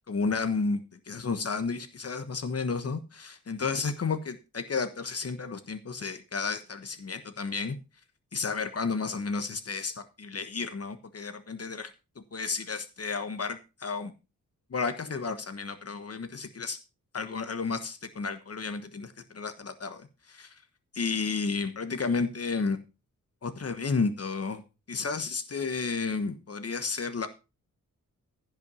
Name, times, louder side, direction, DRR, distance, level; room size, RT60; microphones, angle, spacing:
voice 1, 0.1-7.8 8.3-11.9 12.3-14.1 14.7-16.8 17.1-20.6 20.9-22.8 23.4-24.6 24.9-27.3, left 4 dB, 45° left, 9 dB, 1.3 m, -32 dB
16.0 x 5.9 x 5.5 m, 0.29 s
wide cardioid pair, 155°, 33 cm